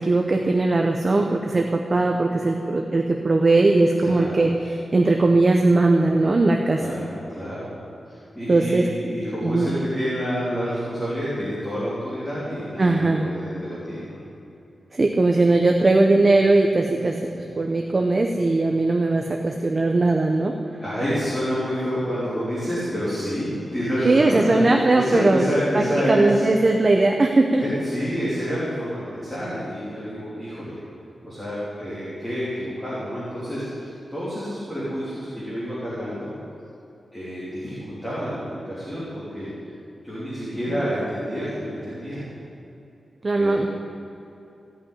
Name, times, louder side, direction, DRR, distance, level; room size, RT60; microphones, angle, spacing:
voice 1, 0.0-6.8 8.5-8.9 9.4-9.7 12.8-13.3 14.9-17.2 17.6-20.6 24.0-25.4 25.7-25.8 26.1-27.6 43.2-43.7, right 2 dB, 30° right, 2 dB, 0.7 m, -19 dB
voice 2, 4.0-4.4 6.8-7.7 8.1-14.2 17.3-17.6 20.8-24.6 24.9-26.5 27.6-30.8 31.2-36.3 37.1-39.5 40.0-42.2 43.3-43.7, equal, 5° left, -10 dB, 3.2 m, -28 dB
16.0 x 5.9 x 10.0 m, 2.8 s
wide cardioid pair, 180°, 0 cm